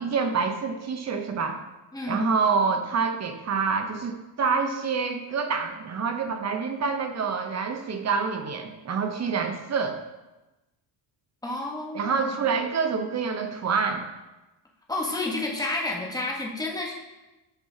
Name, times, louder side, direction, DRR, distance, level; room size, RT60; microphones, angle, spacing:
voice 1, 0.0-1.6 2.1-10.0 11.9-14.0, right 5 dB, 35° right, 6 dB, 0.8 m, -27 dB
voice 2, 1.9-2.3 11.4-12.4 14.9-16.9, left 2 dB, 10° left, -1 dB, 1.1 m, -30 dB
8.0 x 5.4 x 2.8 m, 1.1 s
cardioid pair, 110°, 46 cm